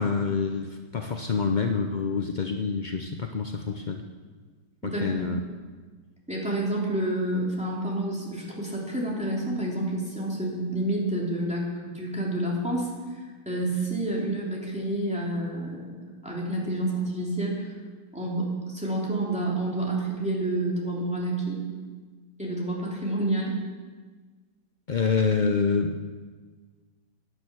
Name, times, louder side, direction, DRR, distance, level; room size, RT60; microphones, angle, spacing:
voice 1, 0.0-4.0 4.8-5.4 24.9-26.0, left 5 dB, 50° left, 4 dB, 0.5 m, -27 dB
voice 2, 4.8-5.2 6.3-17.7 18.1-21.6 22.4-23.6, right 1 dB, 5° right, -4 dB, 3.4 m, -29 dB
16.5 x 10.5 x 6.3 m, 1.4 s
omnidirectional pair, 1.8 m